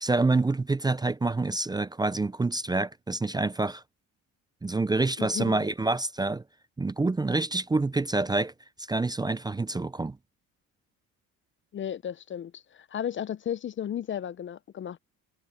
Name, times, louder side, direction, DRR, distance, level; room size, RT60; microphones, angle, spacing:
voice 1, 0.0-3.8 4.6-6.4 6.8-8.5 8.8-10.2, right 3 dB, 10° right, 0.5 m, -27 dB
voice 2, 5.2-5.6 11.7-15.0, left 9 dB, 35° left, 0.5 m, -34 dB
supercardioid pair, 85°, 33 cm